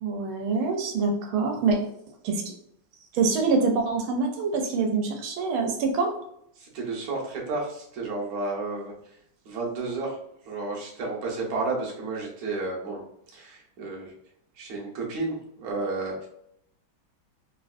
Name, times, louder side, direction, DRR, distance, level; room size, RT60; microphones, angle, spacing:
voice 1, 0.0-1.8 2.2-2.4 3.1-6.1, right 4 dB, 85° right, 3 dB, 1.4 m, -25 dB
voice 2, 6.6-8.9 9.5-10.2 10.5-13.0 13.3-14.1 14.6-16.3, right 3 dB, 55° right, -2 dB, 1.1 m, -32 dB
3.5 x 2.5 x 2.4 m, 0.73 s
omnidirectional pair, 2.2 m